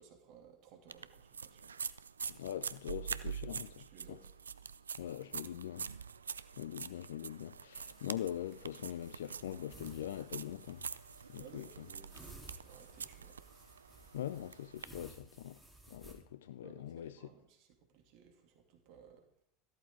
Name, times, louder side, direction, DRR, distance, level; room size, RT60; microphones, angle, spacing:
voice 1, 0.0-1.8 2.9-3.2 3.9-4.3 5.0-5.5 11.4-13.4 16.4-19.3, right 6 dB, 55° right, 2.8 m, -59 dB
sound 1, 0.9-14.8, right 6 dB, 85° right, 0.4 m, -45 dB
voice 2, 2.3-4.2 5.0-5.9 6.6-10.8 11.3-11.6 14.1-15.6 15.9-17.1, left 11 dB, 75° left, 0.4 m, -42 dB
sound 2, 7.8-16.1, right 2 dB, ahead, 3.8 m, -58 dB
14.0 x 13.0 x 3.9 m
hypercardioid pair, 80°, 0 cm